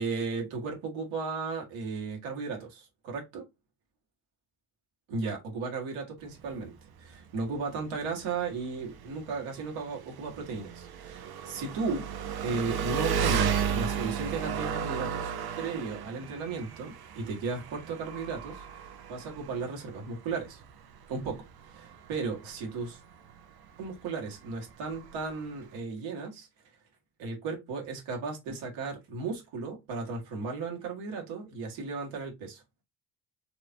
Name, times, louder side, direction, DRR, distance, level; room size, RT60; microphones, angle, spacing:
voice 1, 0.0-3.5 5.1-12.1 12.4-18.8 19.1-20.6 21.1-23.0 23.8-26.5 27.2-32.6, right 4 dB, 65° right, 2.0 m, -35 dB
Engine, 6.2-25.8, right 7 dB, 50° right, 1.0 m, -35 dB
5.3 x 3.2 x 2.7 m
hypercardioid pair, 50°, 49 cm